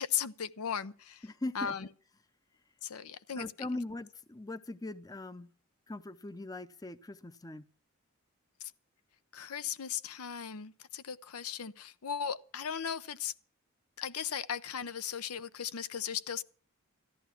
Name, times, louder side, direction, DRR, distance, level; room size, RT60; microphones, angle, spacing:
voice 1, 0.0-1.2 1.5-1.9 2.8-3.5 8.6-8.7 9.3-13.3 14.0-16.4, left 8 dB, 85° left, 0.7 m, -37 dB
voice 2, 1.2-1.8 3.4-5.5 5.9-7.7, left 2 dB, 15° left, 0.6 m, -40 dB
14.0 x 11.0 x 5.9 m
head